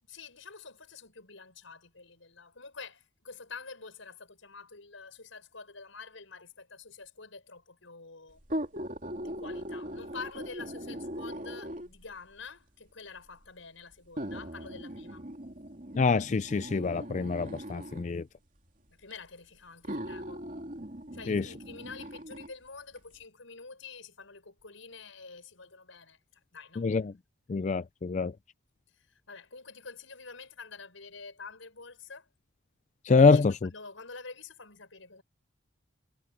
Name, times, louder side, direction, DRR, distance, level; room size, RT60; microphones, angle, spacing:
voice 1, 0.0-8.4 9.2-15.2 18.9-20.4 21.1-26.9 28.9-32.3 33.3-35.2, left 4 dB, 90° left, 6.3 m, -47 dB
sound 1, 8.4-12.1 13.0-13.1 14.2-18.1 19.1-19.2 19.8-22.5 23.0-23.1, equal, 40° right, 3.2 m, -40 dB
voice 2, 15.9-18.2 21.3-21.4 26.8-27.1 27.5-28.3 33.1-33.5, left 4 dB, 40° left, 0.4 m, -25 dB
head